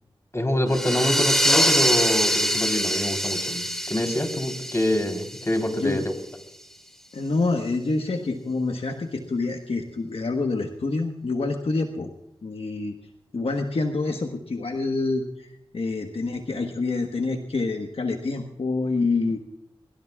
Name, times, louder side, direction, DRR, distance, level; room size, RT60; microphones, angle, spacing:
voice 1, 0.3-6.1, left 1 dB, 30° left, 5 dB, 3.6 m, -25 dB
sound 1, 0.7-6.0, equal, 5° left, 3.1 m, -24 dB
voice 2, 7.1-12.1 12.4-13.0 13.3-19.4, left 3 dB, 75° left, 4 dB, 1.3 m, -27 dB
23.5 x 22.5 x 2.4 m, 0.83 s
cardioid pair, 45°, 10 cm